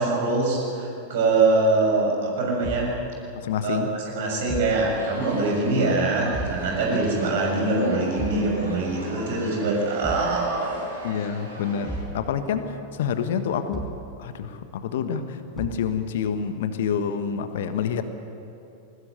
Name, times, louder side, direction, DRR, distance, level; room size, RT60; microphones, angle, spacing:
voice 1, 0.0-2.9 3.6-3.8 4.1-10.8, right 3 dB, 55° right, 0 dB, 6.6 m, -23 dB
Thump thud, 2.6-3.0 4.5-4.8 6.3-6.7 8.2-8.5 10.0-10.4 11.9-12.2 13.7-14.1 15.6-15.9, right 2 dB, 10° right, 4.5 m, -33 dB
voice 2, 3.3-3.9 11.0-13.9 14.2-18.0, left 7 dB, 55° left, 10 dB, 1.3 m, -28 dB
sound 1, 4.7-12.0, right 1 dB, 75° right, 6.3 m, -39 dB
21.0 x 19.5 x 8.3 m, 2.8 s
figure-of-eight pair, 90°, 0 cm